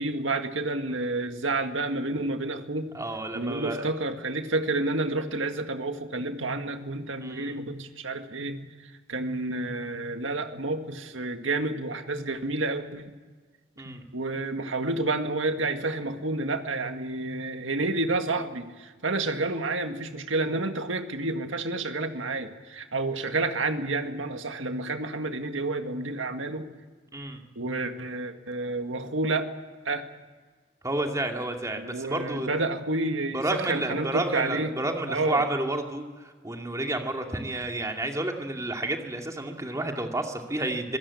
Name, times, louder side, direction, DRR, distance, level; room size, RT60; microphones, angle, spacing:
voice 1, 0.0-2.9 3.3-8.7 9.1-13.1 13.9-26.7 27.6-29.4 29.8-30.0 31.8-34.7 35.1-35.5, right 2 dB, 80° right, 6 dB, 2.0 m, -30 dB
voice 2, 2.9-3.9 7.2-7.6 13.8-14.0 27.1-27.4 30.8-32.5 33.3-41.0, right 2 dB, 15° right, 3 dB, 2.5 m, -30 dB
26.0 x 17.0 x 8.6 m, 1.4 s
head